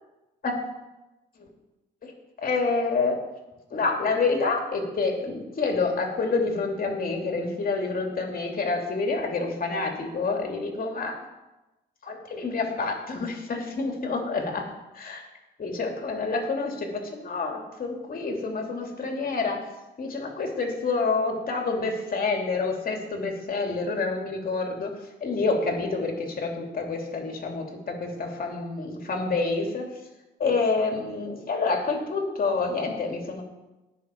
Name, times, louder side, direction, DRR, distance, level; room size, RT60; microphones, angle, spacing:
voice 1, 2.4-3.2 3.7-11.2 12.0-14.6 15.6-19.6 20.0-24.9 25.2-29.9 30.4-33.4, left 4 dB, 45° left, 2 dB, 2.7 m, -28 dB
18.5 x 6.3 x 4.5 m, 1.0 s
cardioid pair, 90°, 20 cm